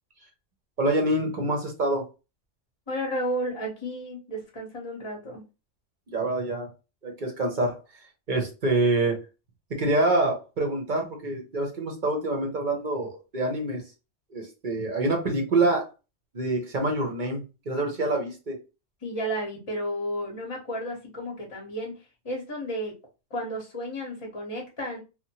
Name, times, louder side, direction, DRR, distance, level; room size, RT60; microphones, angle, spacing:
voice 1, 0.8-2.0 6.1-6.7 7.0-7.8 8.3-9.2 9.7-13.8 14.3-15.9 16.3-18.6, right 2 dB, 45° right, 0.9 m, -26 dB
voice 2, 2.9-5.4 19.0-22.0 22.2-22.9 23.3-25.0, equal, 30° left, 0.9 m, -32 dB
2.9 x 2.1 x 2.8 m
omnidirectional pair, 1.3 m